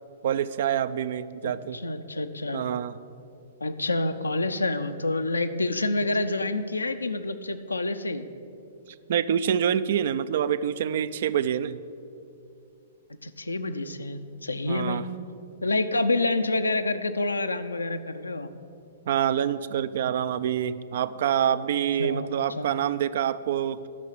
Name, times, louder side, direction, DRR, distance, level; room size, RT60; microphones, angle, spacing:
voice 1, 0.2-1.8 2.5-3.0 9.1-11.8 14.6-15.0 19.1-23.8, right 9 dB, 55° right, 15 dB, 0.4 m, -26 dB
voice 2, 1.4-2.6 3.6-8.3 13.2-15.1 15.6-18.5 22.0-22.3 22.6-22.7, left 2 dB, 80° left, 9 dB, 0.6 m, -28 dB
11.5 x 6.3 x 8.3 m, 2.6 s
figure-of-eight pair, 110°, 0 cm